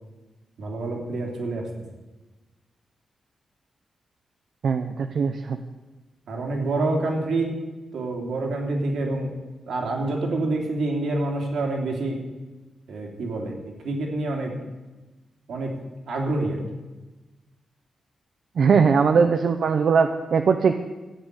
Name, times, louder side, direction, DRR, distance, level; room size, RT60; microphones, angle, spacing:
voice 1, 0.6-1.7 6.3-7.6 7.9-9.4 9.7-12.3 12.9-14.6 15.5-16.6, right 2 dB, 75° right, 1 dB, 3.1 m, -27 dB
voice 2, 4.6-5.6 18.6-20.7, right 5 dB, 55° right, 7 dB, 0.7 m, -20 dB
14.0 x 8.7 x 8.3 m, 1.2 s
wide cardioid pair, 160°, 0 cm